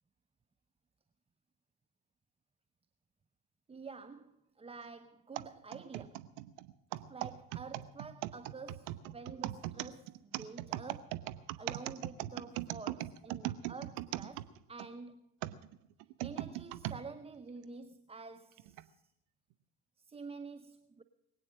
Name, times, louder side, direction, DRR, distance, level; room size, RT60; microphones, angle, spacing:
voice 1, 3.7-6.3 7.1-11.3 11.6-14.4 14.7-15.2 16.2-19.0 20.0-21.0, right 4 dB, 10° right, 0.6 m, -49 dB
sound 1, 5.4-14.9 15.4-17.0 17.6-17.7 18.6-18.8, right 16 dB, 65° right, 1.0 m, -40 dB
22.0 x 9.0 x 6.2 m
hypercardioid pair, 70°, 48 cm